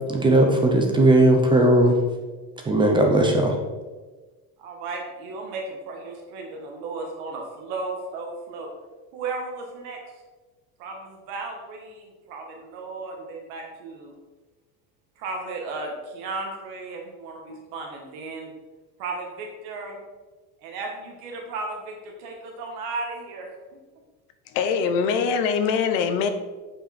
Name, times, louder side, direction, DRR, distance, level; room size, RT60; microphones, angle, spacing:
voice 1, 0.1-1.9 2.7-3.5, right 1 dB, 10° right, 2 dB, 0.6 m, -17 dB
voice 2, 4.6-8.7 9.1-10.0 10.8-14.1 15.2-18.5 19.0-20.0 20.6-23.5, right 3 dB, 60° right, 1 dB, 1.5 m, -35 dB
voice 3, 24.5-26.3, left 6 dB, 70° left, 8 dB, 1.0 m, -23 dB
8.3 x 5.5 x 4.3 m, 1.3 s
cardioid pair, 175°, 40 cm